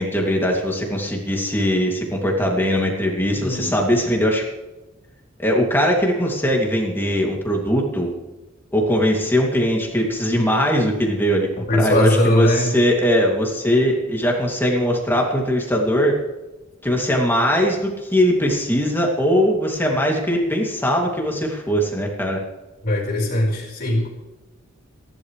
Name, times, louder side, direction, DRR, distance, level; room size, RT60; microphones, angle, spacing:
voice 1, 0.0-4.5 5.4-8.1 8.7-16.2 16.8-22.4, equal, 10° left, 0 dB, 2.6 m, -20 dB
voice 2, 3.3-3.7 11.7-12.7 22.8-24.1, left 1 dB, 50° left, -1 dB, 4.6 m, -20 dB
27.0 x 11.5 x 3.3 m, 1.1 s
head